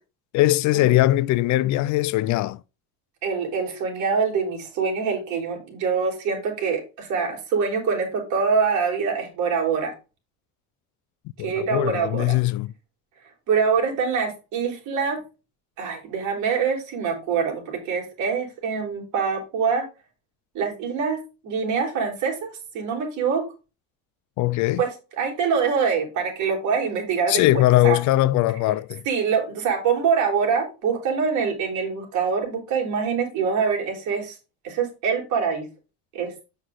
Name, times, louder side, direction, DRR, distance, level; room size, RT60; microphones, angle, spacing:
voice 1, 0.3-2.6 11.4-12.7 24.4-24.8 27.3-29.0, left 16 dB, 60° left, 0.5 m, -20 dB
voice 2, 3.2-9.9 11.4-12.4 13.5-15.2 15.8-19.9 20.5-23.4 24.8-24.9 25.2-27.4 27.8-28.0 29.1-34.4 34.6-35.7 36.1-36.3, right 6 dB, 60° right, 4.3 m, -24 dB
7.9 x 6.3 x 3.9 m
cardioid pair, 160°, 34 cm